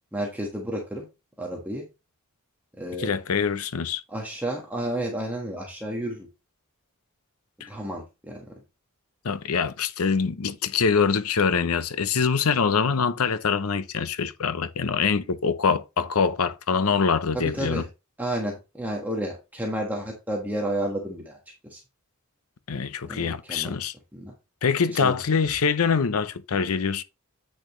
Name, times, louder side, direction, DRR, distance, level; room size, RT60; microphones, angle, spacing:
voice 1, 0.1-1.1 1.4-1.8 2.8-3.1 4.1-6.3 7.7-8.4 12.8-12.9 17.3-17.9 18.2-21.4 21.7-21.8 23.1-23.8 24.1-24.3 24.9-25.2, right 1 dB, 10° right, 1.4 m, -31 dB
voice 2, 3.0-4.0 7.6-7.7 9.2-17.8 22.7-23.9 24.6-27.0, left 5 dB, 85° left, 0.7 m, -24 dB
8.6 x 6.3 x 3.1 m
head